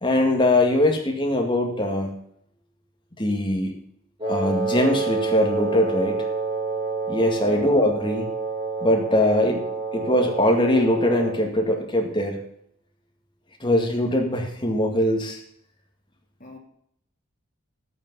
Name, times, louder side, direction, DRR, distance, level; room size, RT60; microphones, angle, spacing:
voice 1, 0.0-2.1 3.2-3.7 4.3-6.2 7.1-8.3 8.8-9.6 9.9-12.4 13.6-15.4, left 1 dB, 25° left, 2 dB, 2.0 m, -21 dB
Wind instrument woodwind instrument, 4.2-11.5, right 4 dB, 20° right, 2.4 m, -28 dB
voice 2, 7.3-7.7 16.4-16.6, left 2 dB, 40° left, 0 dB, 2.7 m, -40 dB
12.5 x 8.7 x 5.5 m, 0.69 s
head